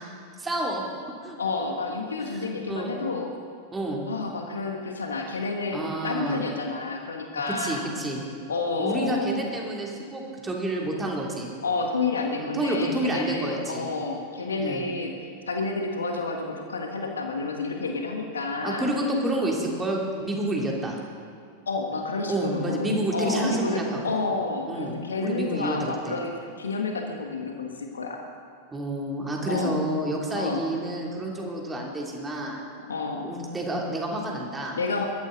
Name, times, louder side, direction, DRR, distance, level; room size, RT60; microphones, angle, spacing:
voice 1, 0.4-0.8 1.2-1.4 2.7-2.9 3.7-4.0 5.7-6.4 7.5-8.2 8.8-11.5 12.4-13.9 14.6-14.8 18.6-21.0 22.3-24.2 24.7-26.2 28.7-32.6 33.2-34.8, right 1 dB, 15° right, -1 dB, 2.9 m, -29 dB
voice 2, 1.4-3.3 4.1-7.8 8.5-9.5 11.6-18.9 21.7-28.2 29.5-29.8 30.3-30.6 32.9-33.3 34.7-35.1, left 3 dB, 70° left, 2 dB, 1.7 m, -30 dB
21.0 x 14.0 x 3.9 m, 2.4 s
figure-of-eight pair, 90°, 0 cm